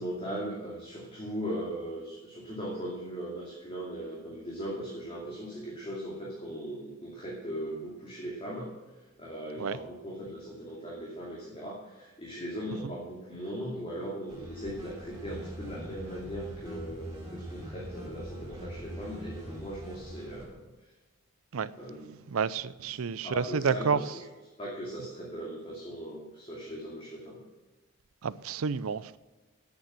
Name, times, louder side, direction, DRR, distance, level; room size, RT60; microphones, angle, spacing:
voice 1, 0.0-8.7 9.2-20.7 21.7-22.1 23.2-24.1 24.6-27.4, equal, 25° left, 2.5 m, -39 dB
sound 1, 14.3-20.4, equal, 15° right, 4.7 m, -43 dB
voice 2, 22.3-24.1 28.2-29.2, right 6 dB, 85° right, 0.5 m, -30 dB
9.4 x 8.6 x 7.5 m
head